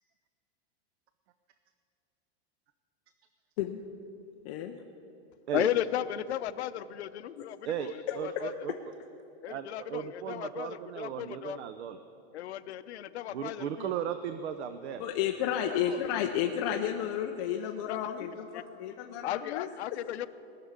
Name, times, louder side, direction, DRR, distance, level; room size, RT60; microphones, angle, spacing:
voice 1, 4.4-4.8 8.1-8.2 8.7-8.8 15.0-19.7, left 10 dB, 30° left, 2 dB, 0.5 m, -32 dB
voice 2, 5.5-8.5 9.4-11.6 12.3-13.9 15.7-16.3 17.9-18.3 18.5-18.6 19.2-20.3, left 12 dB, 80° left, 14 dB, 0.7 m, -35 dB
voice 3, 7.6-8.7 9.5-12.0 13.3-15.0, right 9 dB, 80° right, 10 dB, 0.8 m, -36 dB
18.5 x 6.9 x 9.5 m, 3.0 s
supercardioid pair, 170°, 33 cm